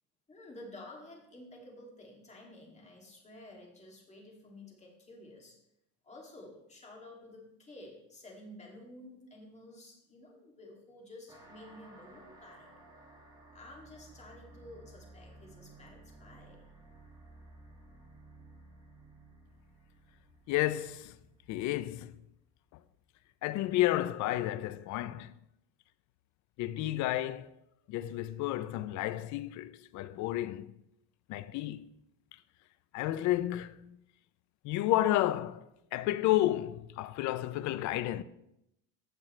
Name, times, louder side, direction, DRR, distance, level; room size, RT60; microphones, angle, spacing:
voice 1, 0.3-5.6 6.0-12.7 13.5-16.6, left 1 dB, 20° left, 2.5 m, -51 dB
sound 1, 11.3-22.3, right 2 dB, 10° right, 1.8 m, -56 dB
voice 2, 20.5-21.2 21.5-22.2 23.4-25.3 26.6-27.5 27.9-30.7 31.3-31.9 32.9-34.0 34.6-35.7 35.9-38.2, left 15 dB, 55° left, 0.5 m, -31 dB
15.5 x 6.2 x 3.2 m
cardioid pair, 135°, 36 cm